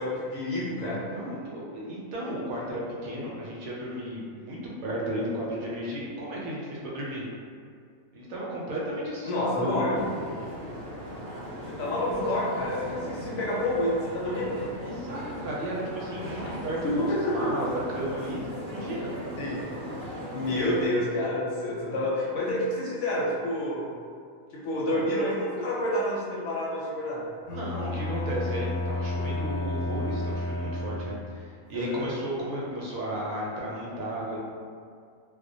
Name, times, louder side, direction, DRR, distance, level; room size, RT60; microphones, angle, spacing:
voice 1, 0.0-1.0 9.2-10.0 11.7-14.6 16.6-17.5 19.4-19.5 20.3-23.9 24.5-27.2 31.7-32.1, left 1 dB, 70° left, -5 dB, 0.8 m, -28 dB
voice 2, 1.1-7.2 8.1-10.0 14.8-18.4 18.7-19.1 24.9-25.0 27.5-34.4, equal, 80° right, -5 dB, 1.0 m, -34 dB
sound 1, 9.9-20.9, equal, 60° right, 0.7 m, -38 dB
Bowed string instrument, 27.5-31.4, left 1 dB, 90° left, 1.1 m, -31 dB
2.3 x 2.1 x 2.6 m, 2.2 s
omnidirectional pair, 1.5 m